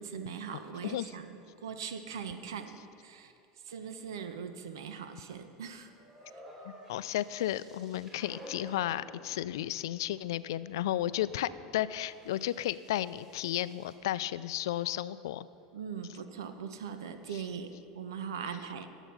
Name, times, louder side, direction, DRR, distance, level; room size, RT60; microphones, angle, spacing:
voice 1, 0.0-3.3 3.6-5.9 6.3-6.4 15.7-18.9, right 7 dB, 85° right, 9 dB, 0.9 m, -41 dB
sound 1, 5.9-14.0, equal, 20° right, 2.9 m, -53 dB
voice 2, 6.9-15.5, left 13 dB, 80° left, 17 dB, 0.3 m, -33 dB
12.5 x 8.0 x 5.6 m, 2.6 s
hypercardioid pair, 100°, 2 cm